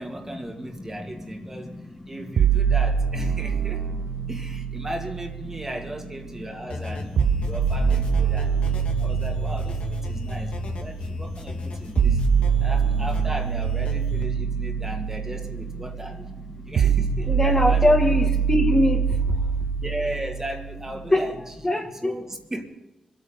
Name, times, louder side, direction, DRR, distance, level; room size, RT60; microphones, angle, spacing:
voice 1, 0.0-1.8 2.1-3.9 4.3-7.1 7.4-8.6 9.0-12.2 12.6-16.2 16.6-17.9 19.8-21.4 21.9-22.7, right 1 dB, 20° right, 2 dB, 2.2 m, -36 dB
sound 1, 2.4-6.4 7.2-21.2, right 7 dB, 85° right, 0.6 m, -25 dB
sound 2, 6.7-14.2, left 2 dB, 80° left, 2.3 m, -34 dB
voice 2, 17.3-19.0 21.1-21.2 21.6-22.1, left 1 dB, 25° left, 2 dB, 2.1 m, -21 dB
25.5 x 9.0 x 5.4 m, 0.94 s
cardioid pair, 80°, 2 cm